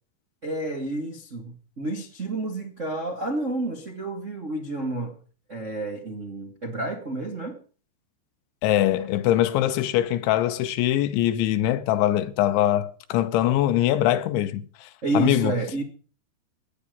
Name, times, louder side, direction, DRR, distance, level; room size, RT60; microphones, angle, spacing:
voice 1, 0.4-5.2 5.5-7.6 15.0-15.8, right 2 dB, 45° right, 0.9 m, -30 dB
voice 2, 8.6-14.9 15.1-15.5, left 13 dB, 85° left, 3.4 m, -22 dB
17.5 x 10.0 x 5.2 m
omnidirectional pair, 5.2 m